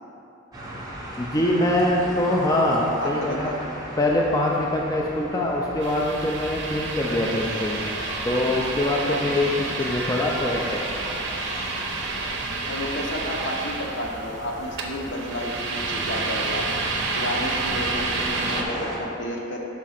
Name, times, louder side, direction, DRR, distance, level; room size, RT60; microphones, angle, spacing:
sound 1, 0.5-19.0, equal, 20° right, 0.8 m, -39 dB
voice 1, 1.2-3.5 4.0-7.8 8.2-10.8, left 1 dB, 20° left, -2 dB, 0.4 m, -23 dB
voice 2, 3.0-3.5 9.0-9.3 12.7-16.6 17.1-19.6, left 1 dB, 60° left, -1 dB, 0.8 m, -31 dB
sound 2, 5.8-18.6, right 3 dB, 60° right, 0.6 m, -30 dB
Chatter, 7.0-12.3, left 1 dB, 85° left, 1.0 m, -37 dB
5.1 x 3.7 x 5.8 m, 2.7 s
head